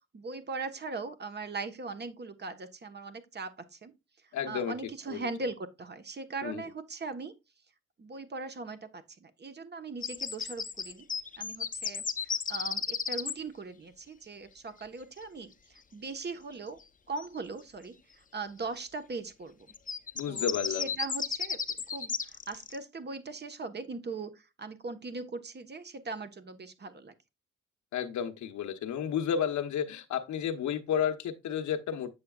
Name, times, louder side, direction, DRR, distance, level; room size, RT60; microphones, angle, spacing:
voice 1, 0.1-3.9 4.5-7.3 8.0-11.1 11.4-16.8 17.1-18.0 18.3-19.6 20.3-21.6 21.9-24.3 24.6-27.1, right 3 dB, 35° right, 1.3 m, -40 dB
voice 2, 4.3-4.7 5.1-5.3 6.4-6.6 20.2-20.9 27.9-32.1, left 8 dB, 70° left, 1.0 m, -32 dB
sound 1, 10.0-13.3 17.2-17.3 19.7-22.8, left 6 dB, 25° left, 0.7 m, -34 dB
7.9 x 6.7 x 2.4 m
cardioid pair, 90°, 30 cm